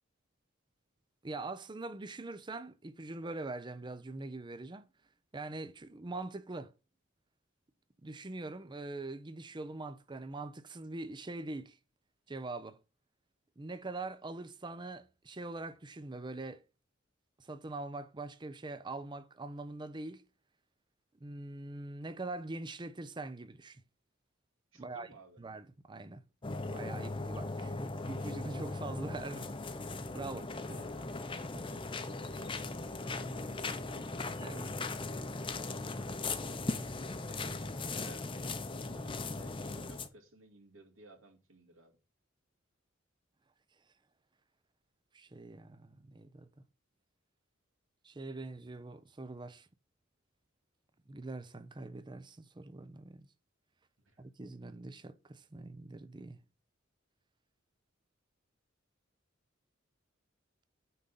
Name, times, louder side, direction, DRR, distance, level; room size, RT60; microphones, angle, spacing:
voice 1, 1.2-4.9 5.3-6.7 8.0-11.8 12.3-12.8 13.6-16.6 17.4-20.2 21.2-23.8 24.8-25.1 25.4-26.2 26.7-29.6 29.8-30.8 31.5-31.6 34.4-34.7 45.1-46.5 48.0-49.7 51.1-53.3 54.2-56.4, right 2 dB, 25° right, 0.6 m, -43 dB
voice 2, 24.7-25.4 30.6-31.3 32.2-32.6 32.8-34.2 37.3-42.0 54.0-54.2, right 2 dB, 85° right, 2.3 m, -58 dB
sound 1, 26.4-40.1, left 3 dB, 25° left, 0.7 m, -38 dB
9.4 x 3.8 x 5.5 m
head